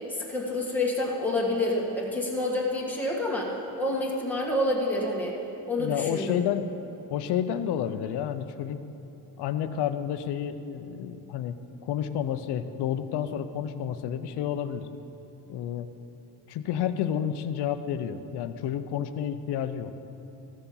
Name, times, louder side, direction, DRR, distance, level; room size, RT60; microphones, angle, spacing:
voice 1, 0.1-5.3 5.7-6.4, left 1 dB, 5° left, -4 dB, 1.5 m, -28 dB
voice 2, 5.8-6.7 7.1-8.8 9.4-11.6 11.8-14.9 15.5-15.9 16.5-19.9, left 9 dB, 65° left, 10 dB, 0.7 m, -30 dB
14.5 x 6.9 x 5.5 m, 2.9 s
cardioid pair, 155°, 43 cm